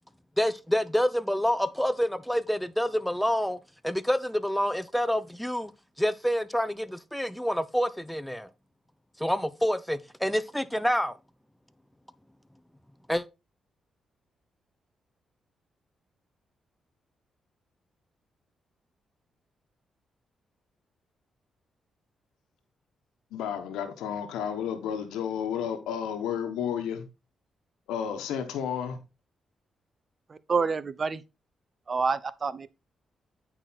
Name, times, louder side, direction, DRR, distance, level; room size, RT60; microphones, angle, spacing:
voice 1, 0.4-3.6 3.8-5.7 6.0-8.5 9.2-11.1 13.1-13.2, equal, 5° left, 0.8 m, -27 dB
voice 2, 23.3-27.0 27.9-29.0, left 8 dB, 90° left, 1.1 m, -32 dB
voice 3, 30.3-31.2 31.9-32.7, right 4 dB, 45° right, 0.8 m, -28 dB
8.7 x 4.8 x 4.1 m
supercardioid pair, 60°, 0 cm